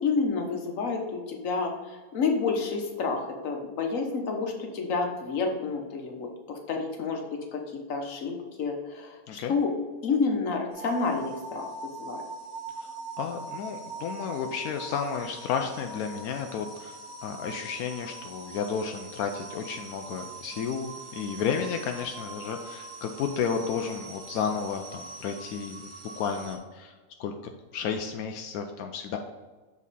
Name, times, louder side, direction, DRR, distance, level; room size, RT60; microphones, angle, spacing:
voice 1, 0.0-7.2 7.5-9.7 10.0-11.7 12.0-12.2, left 4 dB, 65° left, 2 dB, 1.4 m, -29 dB
strange machine starting up, 10.7-26.6, right 3 dB, 40° right, 1.0 m, -42 dB
voice 2, 13.2-25.8 26.2-26.9 27.2-29.2, left 6 dB, 90° left, 4 dB, 1.1 m, -32 dB
7.2 x 4.1 x 4.1 m, 1.3 s
omnidirectional pair, 1.5 m